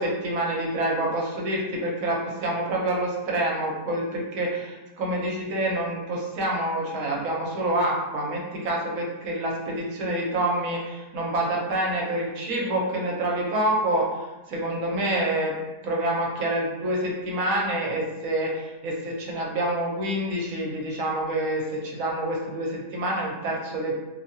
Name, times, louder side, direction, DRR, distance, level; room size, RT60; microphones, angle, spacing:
voice 1, 0.0-15.5 15.8-24.0, right 1 dB, 65° right, -2 dB, 1.0 m, -27 dB
2.7 x 2.2 x 2.7 m, 1.1 s
omnidirectional pair, 1.7 m